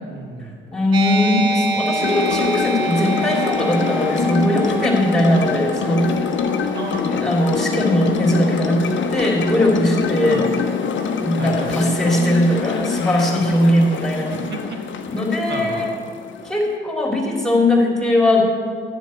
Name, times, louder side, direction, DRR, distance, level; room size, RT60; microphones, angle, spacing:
voice 1, 0.0-0.6 6.7-7.2 10.2-10.6 11.4-11.8 14.3-14.8 15.5-15.9, right 2 dB, 35° right, 1 dB, 2.1 m, -32 dB
voice 2, 0.7-6.1 7.1-10.4 11.2-14.4 15.0-15.9 16.4-18.4, left 1 dB, ahead, -1 dB, 3.2 m, -19 dB
sound 1, 0.9-8.0, right 2 dB, 90° right, 0.6 m, -27 dB
sound 2, 2.0-16.8, left 6 dB, 40° left, 0.9 m, -25 dB
12.5 x 10.5 x 4.6 m, 2.1 s
figure-of-eight pair, 45°, 30 cm